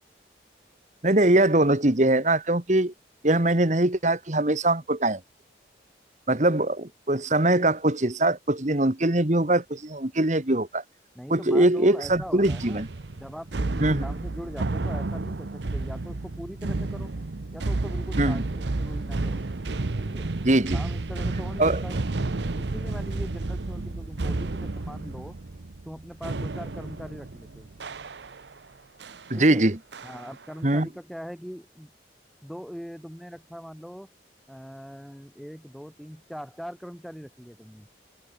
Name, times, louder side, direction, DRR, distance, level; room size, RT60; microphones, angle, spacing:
voice 1, 1.0-2.9 3.2-5.2 6.3-10.8 11.3-12.9 13.8-14.0 18.2-18.4 20.4-20.8 21.6-21.8 29.3-29.8 30.6-30.9, right 1 dB, 40° right, 1.7 m, -22 dB
voice 2, 11.1-12.8 13.2-17.1 17.5-19.4 20.0-20.3 20.7-22.0 22.6-25.3 25.9-27.7 29.3-29.6 30.0-31.9 32.4-34.1 34.5-37.9, equal, ahead, 2.3 m, -41 dB
sound 1, 12.0-28.6 29.0-29.3 29.9-30.4, right 2 dB, 75° right, 0.9 m, -31 dB
open air
head